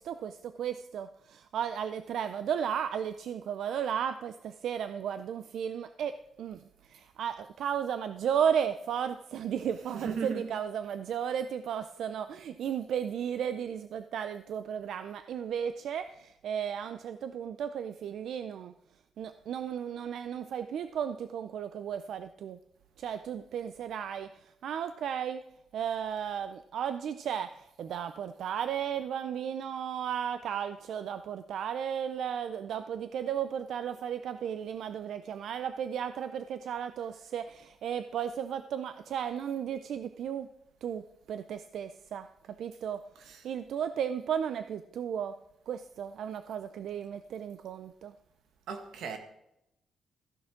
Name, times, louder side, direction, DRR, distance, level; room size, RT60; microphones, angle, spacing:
voice 1, 0.0-6.6 6.9-18.7 19.2-22.6 23.0-24.3 24.6-25.4 25.7-40.5 40.8-42.3 42.6-45.4 45.7-48.1, right 8 dB, 60° right, 0.4 m, -34 dB
voice 2, 9.9-10.5 43.2-43.4 48.7-49.2, right 6 dB, 90° right, 1.6 m, -36 dB
14.5 x 10.5 x 3.7 m
wide cardioid pair, 180°, 0 cm